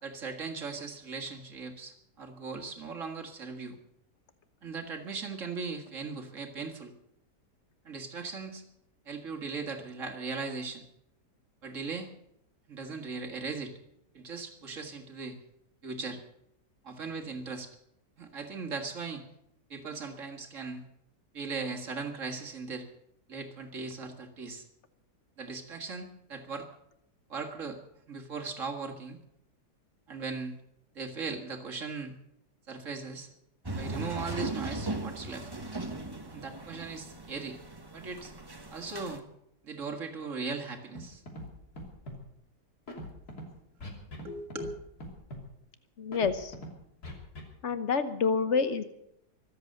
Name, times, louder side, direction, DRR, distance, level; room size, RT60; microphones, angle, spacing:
voice 1, 0.0-3.8 4.6-6.9 7.9-8.6 9.1-10.9 11.6-12.1 12.7-13.7 14.1-15.4 15.8-16.2 16.8-17.7 18.2-19.2 19.7-20.8 21.3-22.9 23.3-24.6 25.4-26.7 27.3-27.8 28.1-29.2 30.1-30.6 30.9-32.1 32.7-33.3 33.8-35.5 36.3-37.6 37.9-38.3 38.7-39.3 39.6-41.2 43.3-43.4 44.2-44.7, right 4 dB, 50° right, 2 dB, 2.1 m, -38 dB
sound 1, 33.7-39.2, right 2 dB, 15° right, 1.1 m, -38 dB
Scratching (performance technique), 41.0-41.1 41.3-41.5 41.8-42.2 42.9-43.4 43.8-44.3 44.5-44.7 45.0-45.4 46.1-46.7 47.0-47.4, equal, 65° left, 3.5 m, -41 dB
voice 2, 46.0-46.5 47.6-48.8, left 5 dB, 45° left, 11 dB, 1.2 m, -28 dB
24.0 x 8.1 x 6.6 m, 0.78 s
omnidirectional pair, 1.8 m